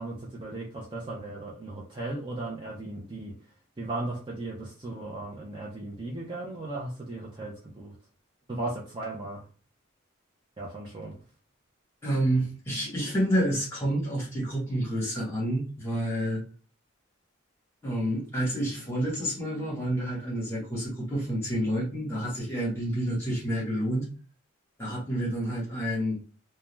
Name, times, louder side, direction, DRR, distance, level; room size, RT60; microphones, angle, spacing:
voice 1, 0.0-3.3 3.8-7.9 8.5-9.5 10.6-11.2, right 2 dB, 25° right, -2 dB, 0.4 m, -36 dB
voice 2, 12.0-16.4 17.8-24.1 24.8-26.2, right 1 dB, 10° left, -4 dB, 1.0 m, -29 dB
2.3 x 2.1 x 3.0 m, 0.37 s
head